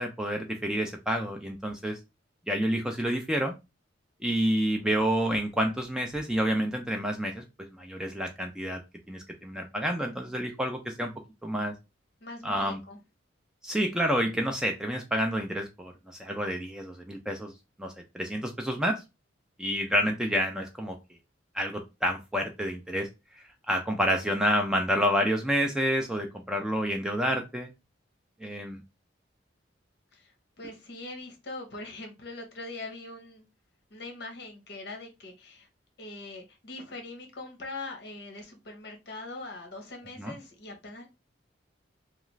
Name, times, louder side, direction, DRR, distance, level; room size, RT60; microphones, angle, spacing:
voice 1, 0.0-2.0 2.5-3.5 4.2-7.4 7.7-8.8 9.1-11.1 11.4-11.7 12.4-12.8 13.6-17.5 17.8-19.0 19.6-20.9 21.5-23.1 23.7-27.7 28.4-28.8 40.2-40.3, equal, 5° right, 0.3 m, -29 dB
voice 2, 12.2-13.0 30.1-33.4 33.9-35.7 36.0-41.1, left 2 dB, 60° left, 0.8 m, -42 dB
2.3 x 2.3 x 3.0 m
head